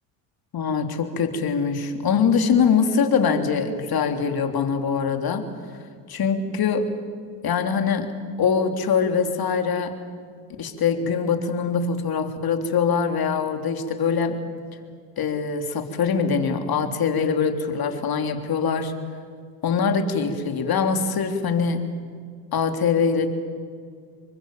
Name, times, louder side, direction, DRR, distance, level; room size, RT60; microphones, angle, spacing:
voice 1, 0.5-5.4 6.1-6.9 7.4-8.1 8.4-9.9 10.6-14.4 15.2-18.9 19.6-21.8 22.5-23.3, left 6 dB, 45° left, 6 dB, 3.4 m, -23 dB
28.0 x 24.5 x 7.3 m, 2.1 s
hypercardioid pair, 70°, 50 cm